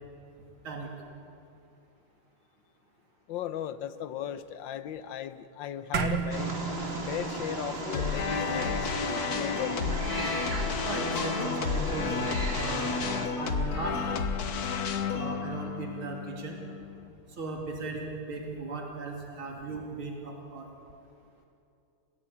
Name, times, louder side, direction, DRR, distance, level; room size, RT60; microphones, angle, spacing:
voice 1, 3.3-6.6 7.1-9.9, left 10 dB, 70° left, 13 dB, 1.5 m, -37 dB
sound 1, 5.9-10.6, right 6 dB, 60° right, 1.9 m, -35 dB
Wild animals, 6.3-13.3, right 1 dB, 30° right, 2.3 m, -36 dB
sound 2, 7.9-17.1, left 5 dB, 50° left, 1.5 m, -31 dB
voice 2, 10.8-13.0 13.4-14.0 15.1-16.6 17.4-20.7, right 3 dB, 80° right, 0 dB, 3.8 m, -37 dB
30.0 x 16.5 x 8.5 m, 2.6 s
omnidirectional pair, 2.3 m